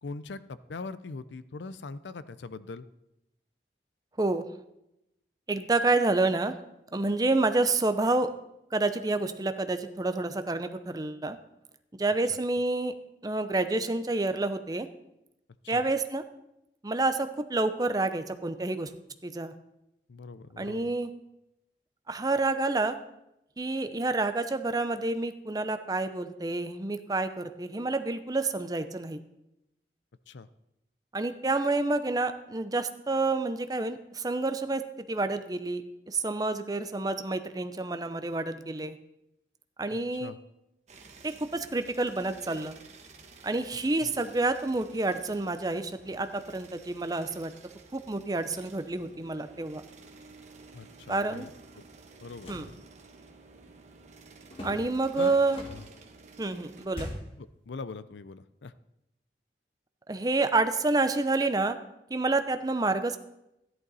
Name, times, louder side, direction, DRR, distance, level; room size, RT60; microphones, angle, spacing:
voice 1, 0.0-2.9 12.3-12.4 15.6-15.9 20.1-20.9 30.3-30.5 39.9-40.4 44.0-44.1 50.7-51.8 52.2-52.7 55.2-55.4 55.7-55.9 57.4-58.7, left 3 dB, 85° left, 15 dB, 0.5 m, -42 dB
voice 2, 5.5-6.5 6.9-8.3 8.7-11.4 12.0-12.9 13.2-14.9 15.7-16.2 16.8-18.9 19.2-19.5 20.6-21.1 22.1-23.0 23.6-29.2 31.1-34.8 35.1-39.0 39.8-40.3 41.2-42.8 43.4-47.5 47.9-49.8 51.1-51.5 52.5-52.7 54.6-55.6 56.4-57.1 60.1-61.8 62.1-63.2, right 2 dB, 20° right, 10 dB, 0.6 m, -28 dB
sound 1, 40.9-56.9, right 3 dB, 40° right, 1.2 m, -53 dB
sound 2, 52.4-52.8 54.5-56.0 56.9-57.4, left 1 dB, 30° left, 1.9 m, -41 dB
13.5 x 11.0 x 4.1 m, 0.87 s
head